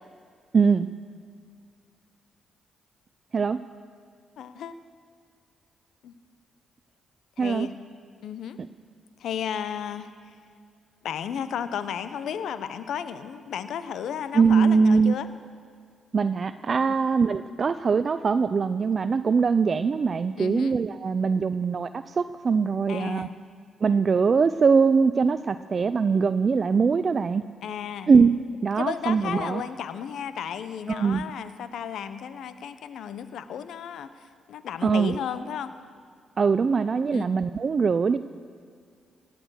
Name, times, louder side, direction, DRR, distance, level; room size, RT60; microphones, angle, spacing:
voice 1, 0.5-0.9 3.3-3.6 7.4-7.7 14.3-15.1 16.1-23.3 23.8-27.4 28.1-29.6 30.9-31.2 34.8-35.1 36.4-38.2, right 5 dB, 50° right, 13 dB, 0.5 m, -22 dB
voice 2, 4.4-4.7 6.0-6.1 7.4-7.7 8.2-8.6 9.2-10.3 11.0-15.3 16.9-17.0 20.4-20.7 22.9-23.4 27.6-28.1 28.8-35.7 37.1-37.4, left 8 dB, 70° left, 12 dB, 0.9 m, -34 dB
17.5 x 11.5 x 6.5 m, 2.2 s
hypercardioid pair, 45°, 0 cm